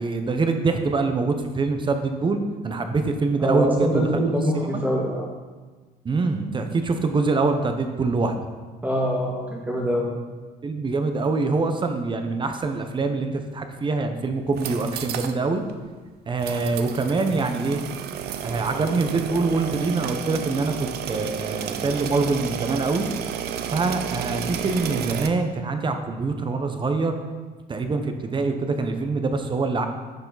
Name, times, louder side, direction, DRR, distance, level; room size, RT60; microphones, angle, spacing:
voice 1, 0.0-4.1 4.6-4.8 6.0-8.4 10.6-15.6 16.3-17.8 18.4-23.1 23.7-27.2 27.7-29.9, right 3 dB, 30° right, 6 dB, 1.0 m, -24 dB
voice 2, 3.4-5.2 8.8-10.1, equal, 10° right, -3 dB, 2.1 m, -24 dB
sound 1, 14.4-15.4 15.7-15.8 16.4-25.3, right 9 dB, 70° right, 0.7 m, -32 dB
11.0 x 6.6 x 4.1 m, 1.4 s
cardioid pair, 110°, 17 cm